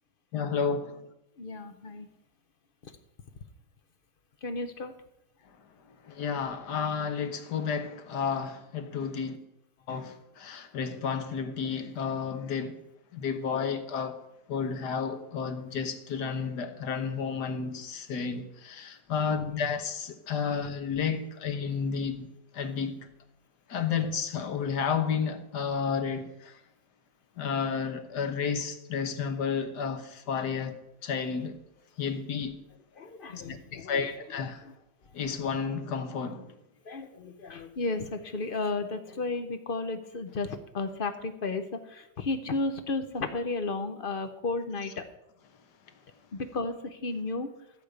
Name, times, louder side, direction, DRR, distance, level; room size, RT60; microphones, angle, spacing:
voice 1, 0.3-1.0 6.1-9.4 9.9-12.8 13.1-14.2 14.5-22.3 22.5-23.1 23.7-26.6 27.4-31.6 32.0-32.5 33.5-34.6 35.1-36.5, left 6 dB, 70° left, 1.6 m, -31 dB
voice 2, 1.4-2.1 4.4-4.9 33.0-34.1 34.6-34.7 36.9-41.6 41.9-45.0 46.3-47.5, left 3 dB, 50° left, 0.6 m, -33 dB
13.5 x 5.0 x 7.9 m
omnidirectional pair, 1.9 m